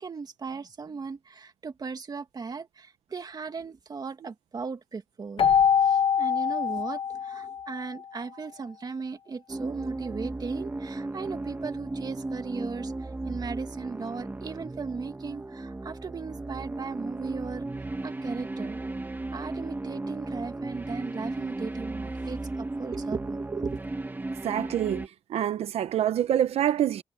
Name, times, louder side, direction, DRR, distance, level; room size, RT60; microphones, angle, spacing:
voice 1, 0.0-5.4 5.8-12.9 13.2-18.8 19.3-23.8, right 5 dB, 40° right, 2.4 m, -37 dB
Keyboard (musical), 5.4-8.0, left 7 dB, 60° left, 0.9 m, -24 dB
sound 1, 9.5-25.1, right 2 dB, 20° right, 1.6 m, -35 dB
voice 2, 24.4-27.0, right 10 dB, 90° right, 1.0 m, -26 dB
cardioid pair, 105°, 10 cm